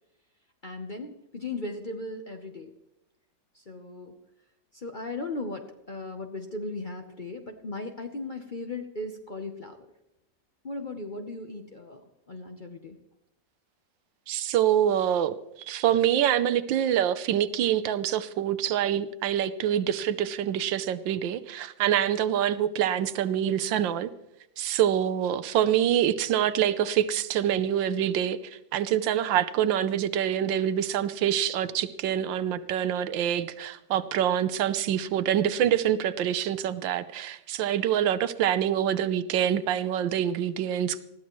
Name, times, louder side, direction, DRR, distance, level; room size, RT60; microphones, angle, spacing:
voice 1, 0.6-2.7 3.5-4.2 4.7-9.9 10.6-13.0, left 2 dB, 40° left, 4 dB, 0.7 m, -37 dB
voice 2, 14.3-24.1 24.6-41.0, right 10 dB, 85° right, 13 dB, 1.4 m, -26 dB
20.0 x 14.5 x 3.1 m, 0.90 s
omnidirectional pair, 2.0 m